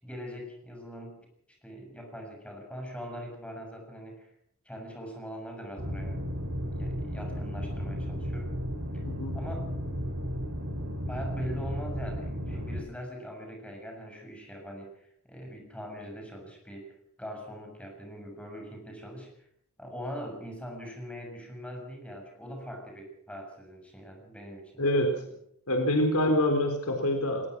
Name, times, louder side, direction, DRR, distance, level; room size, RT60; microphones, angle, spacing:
voice 1, 0.0-4.3 4.6-6.3 6.7-8.5 9.3-9.7 11.1-14.9 15.2-19.5 19.8-25.3, equal, 5° left, 2 dB, 6.7 m, -42 dB
sound 1, 5.8-12.8, equal, 65° right, 6.1 m, -34 dB
voice 2, 9.0-9.4 24.8-25.2 25.7-27.5, left 1 dB, 85° left, 4 dB, 4.0 m, -26 dB
21.0 x 20.5 x 6.2 m, 0.69 s
head